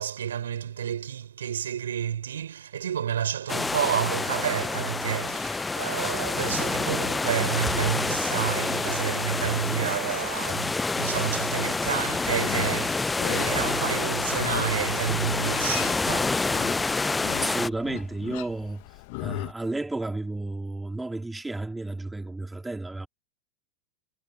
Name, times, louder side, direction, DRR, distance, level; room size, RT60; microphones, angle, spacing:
voice 1, 0.0-16.5, right 9 dB, 65° right, 5.2 m, -30 dB
sound 1, 3.5-17.7, left 3 dB, 10° left, 0.8 m, -28 dB
Livestock farm animals working animals, 12.2-19.5, left 29 dB, 45° left, 1.6 m, -38 dB
voice 2, 17.4-18.8 19.2-23.1, right 2 dB, 5° right, 3.4 m, -32 dB
figure-of-eight pair, 90°, 0 cm